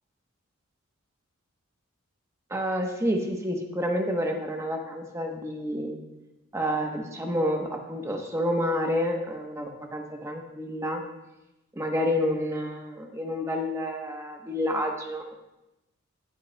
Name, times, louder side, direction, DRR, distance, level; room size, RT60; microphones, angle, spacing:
voice 1, 2.5-6.0 6.5-11.0 11.7-15.2, equal, 15° right, 2 dB, 0.9 m, -29 dB
18.0 x 6.6 x 2.2 m, 0.96 s
head